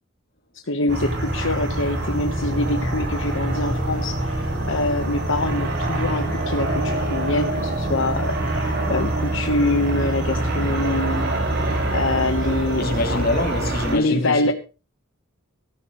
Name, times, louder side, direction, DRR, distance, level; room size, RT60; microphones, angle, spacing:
voice 1, 0.7-13.3 13.9-14.5, left 2 dB, 65° left, 1.4 m, -25 dB
sound 1, 0.9-14.0, right 1 dB, 50° right, 5.6 m, -25 dB
voice 2, 12.8-14.5, left 2 dB, 45° left, 3.0 m, -25 dB
17.5 x 14.0 x 3.3 m
head